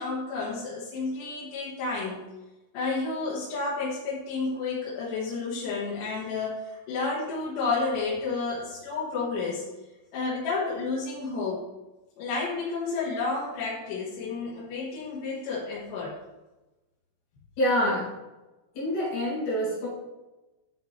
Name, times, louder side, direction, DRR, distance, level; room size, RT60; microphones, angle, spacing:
voice 1, 0.0-2.2 2.7-9.6 10.1-11.6 12.2-16.1, left 4 dB, 65° left, -9 dB, 3.4 m, -31 dB
voice 2, 17.6-18.1 18.7-19.9, equal, 45° left, -8 dB, 3.6 m, -26 dB
10.0 x 5.8 x 3.3 m, 1.1 s
omnidirectional pair, 5.9 m